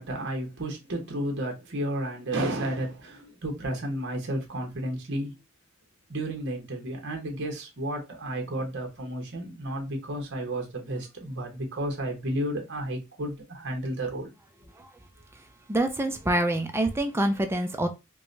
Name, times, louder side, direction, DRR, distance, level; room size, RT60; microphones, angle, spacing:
voice 1, 0.0-5.3 6.1-14.3, right 1 dB, 55° right, 1.0 m, -32 dB
voice 2, 15.7-17.9, right 1 dB, 10° right, 0.4 m, -26 dB
4.5 x 2.2 x 2.6 m
head